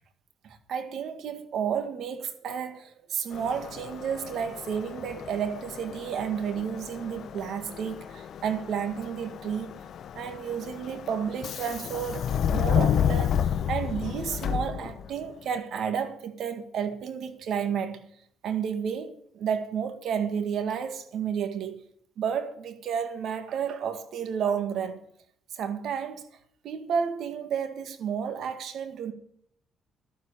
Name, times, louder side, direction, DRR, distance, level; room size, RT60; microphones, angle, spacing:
voice 1, 0.4-9.8 10.1-18.1 18.4-21.8 22.2-25.0 25.5-26.3 26.6-29.1, right 7 dB, 70° right, 1.8 m, -31 dB
Subway metro underground, 3.3-15.3, left 8 dB, 65° left, 0.9 m, -31 dB
12.0 x 7.7 x 8.6 m
cardioid pair, 90°, 0 cm